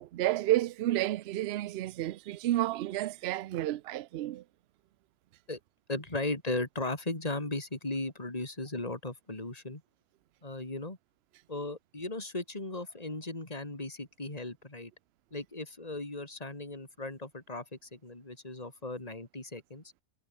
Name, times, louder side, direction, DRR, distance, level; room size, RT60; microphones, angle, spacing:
voice 1, 0.0-4.4, right 14 dB, 65° right, 0.6 m, -31 dB
voice 2, 5.9-9.8 10.4-11.0 11.5-14.9 15.3-19.8, left 2 dB, 25° left, 3.7 m, -37 dB
omnidirectional pair, 1.5 m